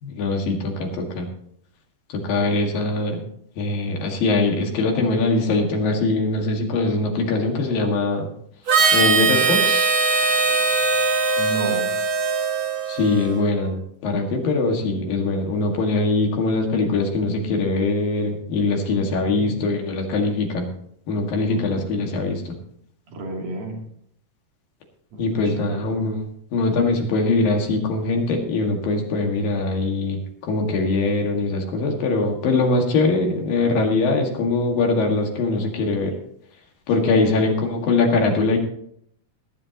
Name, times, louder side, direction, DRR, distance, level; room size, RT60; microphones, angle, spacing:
voice 1, 0.0-1.3 2.2-3.2 3.6-8.3 8.9-9.9 12.9-20.7 21.1-22.6 25.2-26.2 26.5-30.2 30.5-36.1 36.9-38.6, left 3 dB, 75° left, 1 dB, 3.7 m, -22 dB
Harmonica, 8.7-13.4, right 4 dB, 45° right, 1.9 m, -20 dB
voice 2, 11.4-11.9 18.9-19.6 21.3-22.0 23.1-23.8 25.1-25.9 37.0-37.2, right 1 dB, 80° right, -2 dB, 4.8 m, -33 dB
20.0 x 11.0 x 3.0 m, 0.69 s
omnidirectional pair, 4.1 m